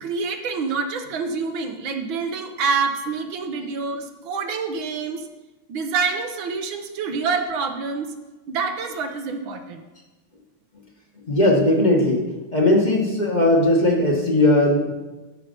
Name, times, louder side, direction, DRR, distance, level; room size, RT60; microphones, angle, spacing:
voice 1, 0.0-5.3 5.7-8.1 8.5-9.8, right 5 dB, 75° right, 5 dB, 1.6 m, -27 dB
voice 2, 11.3-12.2 12.5-14.9, left 1 dB, 25° left, 0 dB, 1.2 m, -18 dB
13.0 x 5.7 x 5.3 m, 1.2 s
omnidirectional pair, 2.2 m